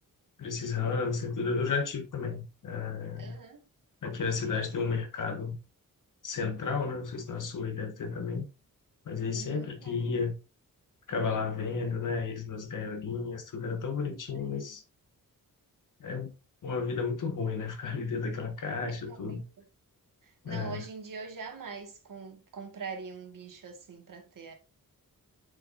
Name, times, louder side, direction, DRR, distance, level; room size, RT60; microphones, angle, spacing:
voice 1, 0.4-3.4 4.0-5.6 6.2-8.5 9.1-10.3 11.1-14.8 16.0-16.3 16.6-19.4 20.4-20.8, left 5 dB, 60° left, 1.7 m, -32 dB
voice 2, 3.2-3.6 9.3-9.9 14.3-14.8 18.9-19.4 20.2-24.5, right 5 dB, 65° right, 2.1 m, -43 dB
7.9 x 6.4 x 2.7 m
wide cardioid pair, 180°, 35 cm